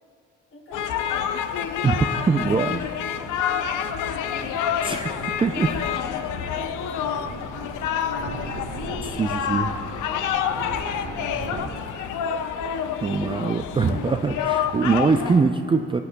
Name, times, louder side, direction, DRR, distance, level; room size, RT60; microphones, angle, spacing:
voice 1, 0.5-1.3 2.6-4.5 6.1-8.7 9.4-12.1, left 1 dB, 45° left, -2 dB, 2.8 m, -48 dB
sound 1, 0.7-15.4, left 8 dB, 80° left, 0.6 m, -28 dB
sound 2, 0.8-11.7, right 4 dB, 55° right, 1.3 m, -40 dB
voice 2, 1.8-2.8 4.8-5.1 5.4-5.7 9.1-9.7 13.0-16.0, right 4 dB, 20° right, 5 dB, 0.3 m, -22 dB
20.5 x 8.3 x 2.2 m, 2.3 s
cardioid pair, 90°, 30 cm